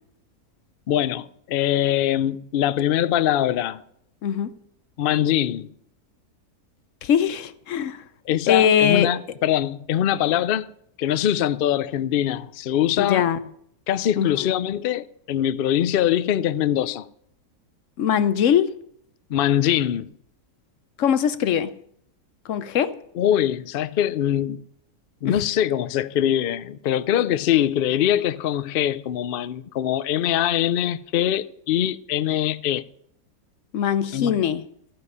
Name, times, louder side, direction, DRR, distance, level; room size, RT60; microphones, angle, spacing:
voice 1, 0.9-3.8 5.0-5.7 8.3-10.7 11.0-13.3 13.9-17.1 19.3-20.1 23.2-24.6 25.2-32.8 34.1-34.3, left 11 dB, 85° left, 0.4 m, -23 dB
voice 2, 4.2-4.5 7.0-8.0 8.5-9.1 13.0-13.4 14.2-14.5 18.0-18.7 21.0-21.7 22.5-23.0 25.2-25.4 33.7-34.6, left 8 dB, 60° left, 1.0 m, -21 dB
14.0 x 9.6 x 5.5 m
omnidirectional pair, 1.6 m